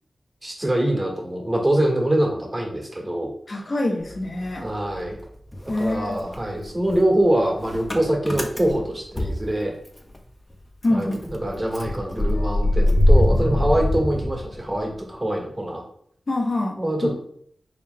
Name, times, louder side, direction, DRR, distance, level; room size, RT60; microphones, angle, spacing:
voice 1, 0.4-3.3 4.5-5.2 5.8-9.7 10.9-15.8 16.8-17.1, right 1 dB, 30° right, 0 dB, 1.5 m, -24 dB
voice 2, 3.5-4.7 5.7-6.1 10.8-11.2 16.3-17.1, left 2 dB, 60° left, 1 dB, 0.9 m, -25 dB
Motor vehicle (road) / Engine starting, 4.0-5.2 5.5-10.2 10.5-10.6 10.8-14.9, left 1 dB, 30° left, 0.8 m, -23 dB
5.1 x 3.4 x 2.2 m, 0.64 s
cardioid pair, 50°, 0 cm